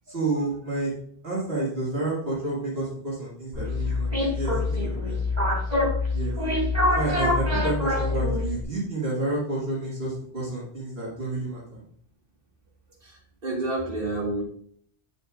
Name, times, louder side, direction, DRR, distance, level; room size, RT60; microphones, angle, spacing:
voice 1, 0.1-0.9 1.2-5.3 6.1-6.3 6.9-11.8, right 2 dB, 75° right, -7 dB, 2.4 m, -30 dB
sound 1, 3.5-8.6, left 2 dB, 40° right, 3.1 m, -25 dB
voice 2, 13.0-14.4, right 2 dB, 60° right, -5 dB, 2.7 m, -30 dB
9.3 x 6.9 x 2.5 m, 0.63 s
omnidirectional pair, 1.0 m